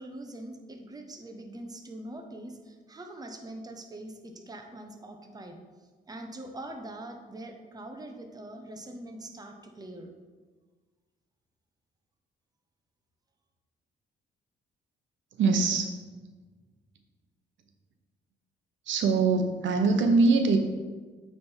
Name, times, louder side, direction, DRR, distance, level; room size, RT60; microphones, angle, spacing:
voice 1, 0.0-5.6 6.1-10.1, right 1 dB, 20° right, 4 dB, 0.9 m, -43 dB
voice 2, 15.4-16.0 18.9-20.6, right 4 dB, 70° right, 5 dB, 0.8 m, -23 dB
9.1 x 3.4 x 4.5 m, 1.4 s
cardioid pair, 90°, 20 cm